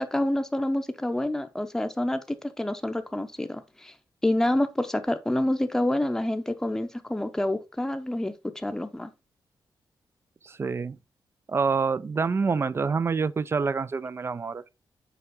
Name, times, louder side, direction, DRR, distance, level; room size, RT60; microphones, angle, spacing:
voice 1, 0.0-3.9 4.2-9.1, left 1 dB, 5° left, 0.7 m, -28 dB
voice 2, 10.4-11.0 11.5-14.6, right 5 dB, 30° right, 0.3 m, -27 dB
6.8 x 4.8 x 3.6 m
wide cardioid pair, 135°, 8 cm